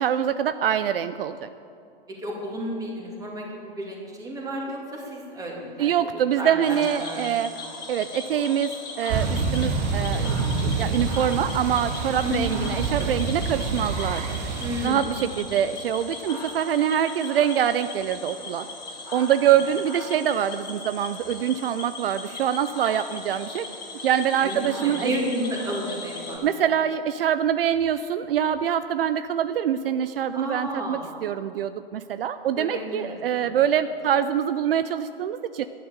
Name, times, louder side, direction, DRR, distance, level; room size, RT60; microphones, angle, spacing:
voice 1, 0.0-1.5 5.8-7.5 7.9-10.4 10.6-14.4 14.8-18.7 19.1-23.7 24.0-25.1 26.2-35.6, right 9 dB, 70° right, 12 dB, 0.6 m, -24 dB
voice 2, 2.2-5.9 6.4-7.6 12.2-12.7 14.6-15.2 24.4-26.7 30.3-31.1 32.6-33.4, equal, 10° right, -2 dB, 2.8 m, -32 dB
Cricket / Frog, 6.6-26.4, left 3 dB, 15° left, 2.7 m, -38 dB
sound 1, 9.1-14.9, right 4 dB, 45° right, 1.4 m, -27 dB
11.5 x 11.0 x 6.7 m, 2.6 s
hypercardioid pair, 130°, 30 cm